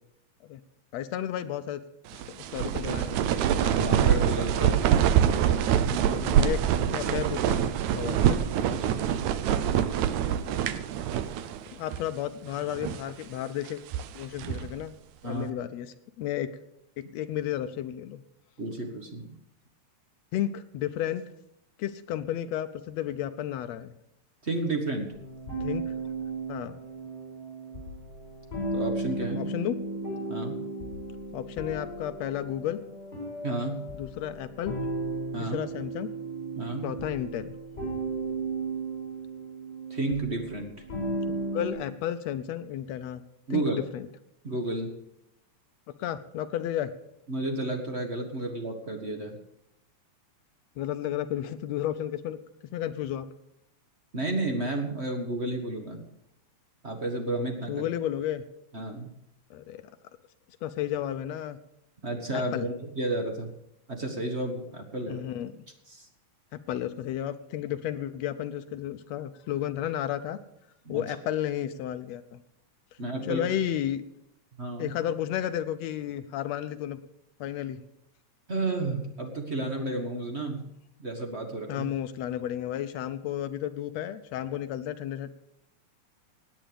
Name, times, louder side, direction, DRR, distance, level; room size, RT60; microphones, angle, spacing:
voice 1, 0.9-1.8 2.1-3.4 4.6-4.8 5.9-7.6 8.0-8.4 11.7-13.8 14.1-14.9 15.2-16.5 17.1-18.2 20.3-21.2 21.8-23.9 25.6-25.9 26.5-26.8 29.3-29.8 31.3-32.8 33.9-34.7 35.4-36.1 36.8-37.5 41.5-43.2 43.5-44.1 46.0-46.9 50.8-52.4 52.6-53.3 57.7-58.4 59.5-59.8 60.6-61.6 62.3-62.7 65.1-65.6 66.5-70.4 70.9-72.4 73.3-74.0 74.8-77.0 77.4-77.8 81.7-85.3, left 11 dB, 75° left, 11 dB, 1.7 m, -32 dB
sound 1, 2.1-11.6 11.9-12.0 12.6-13.1 13.7-14.8, right 9 dB, 80° right, 2.0 m, -25 dB
voice 2, 3.6-4.8 8.6-9.1 15.2-15.5 18.6-19.3 24.4-25.1 28.7-29.5 30.3-30.6 33.4-33.8 35.3-35.6 36.6-36.9 39.9-40.7 43.5-43.8 44.4-44.9 47.3-49.4 54.1-56.1 56.8-57.9 58.7-59.1 62.0-63.5 63.9-65.2 65.9-66.1 70.8-71.0 73.0-73.5 74.6-74.9 78.5-80.6 81.0-81.9, right 2 dB, 35° right, 3 dB, 1.1 m, -32 dB
sound 2, 25.1-41.7, right 2 dB, 30° left, 5.7 m, -35 dB
18.0 x 9.2 x 5.1 m, 0.81 s
omnidirectional pair, 3.4 m